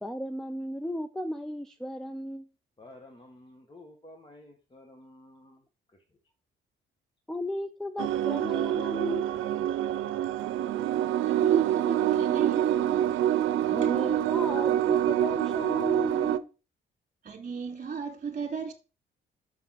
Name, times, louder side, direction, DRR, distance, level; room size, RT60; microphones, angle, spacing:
voice 1, 0.0-2.5 7.3-9.5 13.7-16.5, equal, ahead, 0.6 m, -35 dB
voice 2, 2.8-6.0, left 1 dB, 25° left, 1.5 m, -52 dB
sound 1, 8.0-16.4, right 11 dB, 80° right, 0.6 m, -26 dB
voice 3, 11.2-13.1 17.2-18.7, right 6 dB, 40° right, 2.2 m, -33 dB
5.7 x 5.7 x 5.8 m
cardioid pair, 90°, 20 cm